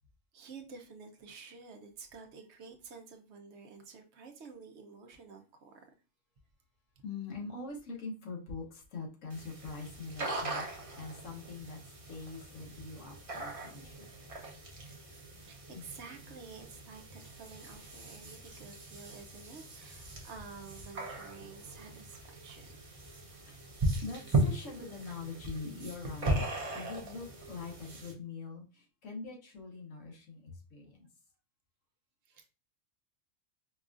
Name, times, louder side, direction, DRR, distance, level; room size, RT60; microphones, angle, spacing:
voice 1, 0.3-5.9 15.4-22.8 32.3-32.5, right 5 dB, 70° right, 1.0 m, -50 dB
voice 2, 7.0-10.6 11.0-11.8 12.1-14.1 15.7-15.8 23.4-23.5 24.0-26.4 26.7-31.1, left 4 dB, 90° left, 1.3 m, -43 dB
sound 1, 9.3-28.1, right 2 dB, 35° right, 0.7 m, -38 dB
4.7 x 2.3 x 2.4 m
omnidirectional pair, 1.3 m